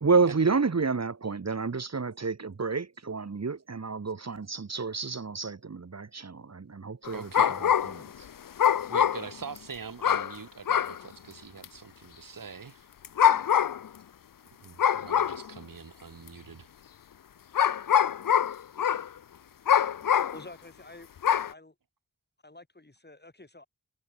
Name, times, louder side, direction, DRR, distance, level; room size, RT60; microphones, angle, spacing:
voice 1, 0.0-7.3 7.6-7.7 7.9-8.0, right 4 dB, 50° right, 1.7 m, -29 dB
sound 1, 7.1-8.1 8.6-9.6 10.0-10.4 10.7-11.0 11.6-11.7 13.0-13.9 14.8-15.5 16.3-16.4 17.5-19.1 19.7-20.4 21.2-21.5, left 9 dB, 80° left, 0.7 m, -24 dB
voice 2, 7.1-7.9 8.9-12.9 14.6-16.7, right 6 dB, 80° right, 2.3 m, -43 dB
voice 3, 20.3-21.1 21.4-21.7 22.4-23.7, left 2 dB, 30° left, 7.6 m, -48 dB
wide cardioid pair, 70°, 33 cm